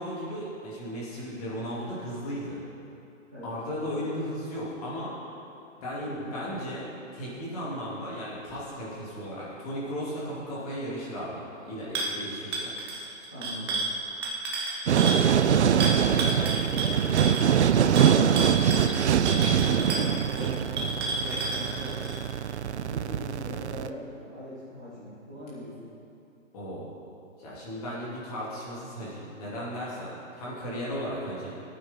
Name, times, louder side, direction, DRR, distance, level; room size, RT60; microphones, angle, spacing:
voice 1, 0.0-2.6 3.4-5.1 5.8-12.7 17.7-17.9 26.5-26.9 27.4-31.6, equal, 30° left, -7 dB, 3.0 m, -35 dB
voice 2, 6.0-6.5 13.3-13.9 15.1-19.0 19.6-22.2 22.7-25.9, equal, 5° left, -16 dB, 0.5 m, -40 dB
sound 1, 11.9-12.1 12.5-15.2 15.8-22.2, right 2 dB, 20° right, 0.9 m, -31 dB
sound 2, 14.9-23.9, right 9 dB, 60° right, 0.5 m, -23 dB
17.0 x 8.8 x 3.8 m, 2.8 s
hypercardioid pair, 165°, 39 cm